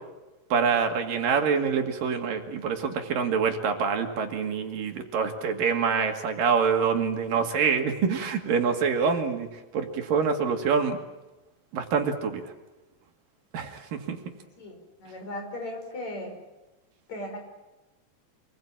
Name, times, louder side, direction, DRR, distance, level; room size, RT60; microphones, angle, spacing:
voice 1, 0.5-9.5 9.7-11.0 11.7-12.4 13.5-14.2, right 6 dB, 85° right, 4 dB, 4.0 m, -26 dB
voice 2, 14.6-16.4 17.1-17.4, left 1 dB, 55° left, 3 dB, 6.9 m, -37 dB
27.5 x 21.0 x 8.9 m, 1.1 s
omnidirectional pair, 3.9 m